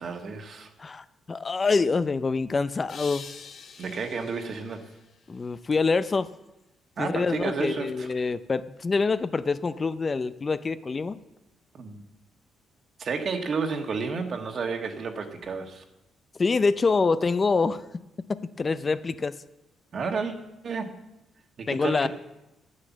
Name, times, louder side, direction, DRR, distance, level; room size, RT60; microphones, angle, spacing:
voice 1, 0.0-0.7 3.8-4.9 7.0-8.1 11.7-12.0 13.0-15.8 19.9-20.3 20.6-20.9 21.6-22.1, right 5 dB, 50° right, 5 dB, 1.7 m, -31 dB
voice 2, 0.8-3.3 5.3-6.3 7.0-11.2 16.4-17.8 18.3-19.3 21.7-22.1, left 4 dB, 30° left, 14 dB, 0.5 m, -26 dB
sound 1, 2.9-6.0, left 6 dB, 55° left, 1.3 m, -46 dB
9.6 x 9.1 x 7.3 m, 0.93 s
cardioid pair, 90°, 0 cm